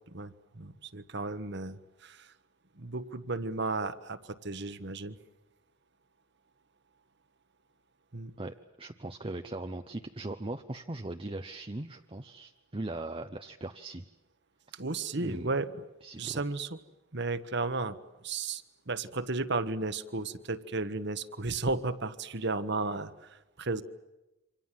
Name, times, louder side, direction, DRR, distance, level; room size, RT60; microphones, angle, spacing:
voice 1, 0.1-2.3 2.8-5.2 8.1-8.3 14.7-15.7 16.2-16.8 17.1-18.0 18.2-23.8, right 3 dB, 55° right, 11 dB, 1.4 m, -34 dB
voice 2, 8.4-14.0 15.2-15.5 16.0-16.4, right 2 dB, 25° right, 5 dB, 0.9 m, -39 dB
28.0 x 25.5 x 7.6 m, 1.0 s
head